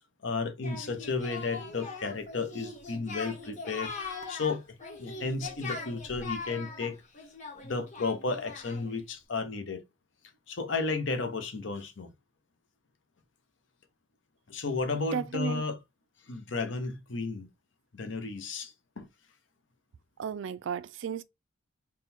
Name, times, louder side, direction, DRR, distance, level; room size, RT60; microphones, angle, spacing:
voice 1, 0.2-3.9 4.3-4.6 5.0-7.0 7.6-9.8 10.5-12.1 14.5-15.8 16.3-17.5 17.9-19.1, left 4 dB, 65° left, 0.8 m, -33 dB
Singing, 0.6-9.0, left 4 dB, 40° left, 1.2 m, -41 dB
voice 2, 15.1-15.6 20.2-21.2, right 7 dB, 70° right, 0.3 m, -33 dB
3.6 x 2.3 x 4.2 m
head